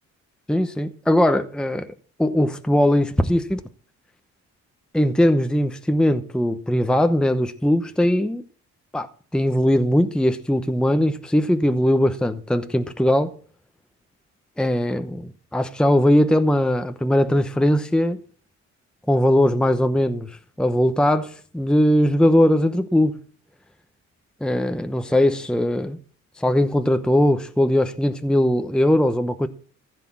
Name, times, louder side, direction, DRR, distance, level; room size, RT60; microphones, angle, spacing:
voice 1, 0.5-1.9 2.2-3.6 4.9-8.4 8.9-9.1 9.3-13.3 14.6-18.2 19.1-23.2 24.4-26.0 26.4-29.5, left 1 dB, 5° left, 0.9 m, -20 dB
15.0 x 6.6 x 7.4 m
cardioid pair, 90°, 30 cm